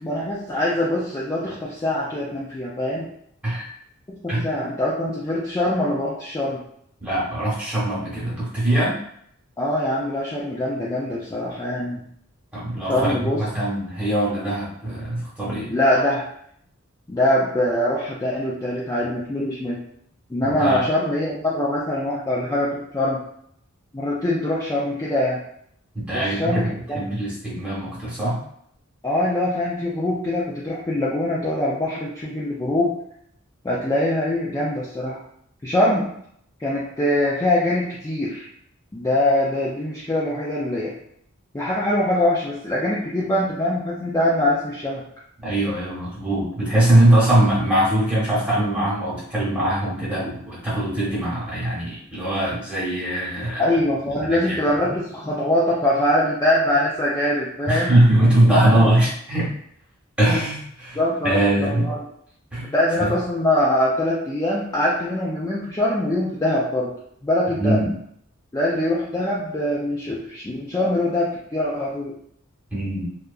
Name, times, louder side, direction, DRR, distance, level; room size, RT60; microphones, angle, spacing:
voice 1, 0.0-3.1 4.1-6.6 9.6-12.1 12.9-13.4 15.7-16.3 17.1-19.8 20.3-23.2 23.9-25.4 26.1-27.1 29.0-32.9 33.6-35.2 35.6-36.1 36.6-38.5 38.9-40.9 41.5-45.0 53.6-57.9 58.5-58.9 61.0-62.0 62.7-66.9 67.2-67.8 68.5-72.1, left 1 dB, 15° left, -6 dB, 0.3 m, -23 dB
voice 2, 7.0-9.0 12.5-15.7 20.4-20.8 25.9-26.7 26.9-28.4 45.4-53.6 54.2-54.6 57.7-59.5 60.2-61.0 61.2-61.9 62.5-62.7 63.0-63.1 67.6-67.9 72.7-73.0, right 1 dB, 5° right, -8 dB, 1.0 m, -21 dB
2.7 x 2.3 x 2.3 m, 0.69 s
head